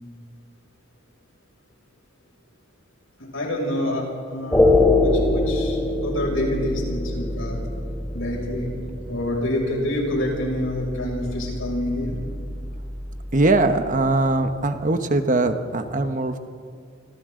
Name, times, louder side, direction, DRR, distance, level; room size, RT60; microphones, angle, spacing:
voice 1, 3.3-7.6 8.1-8.7 9.1-12.2, left 1 dB, 85° left, -1 dB, 6.3 m, -27 dB
sound 1, 4.5-14.7, left 2 dB, 10° left, 1.2 m, -25 dB
voice 2, 13.3-16.4, right 2 dB, 40° right, 8 dB, 1.1 m, -21 dB
26.0 x 26.0 x 3.9 m, 2.2 s
head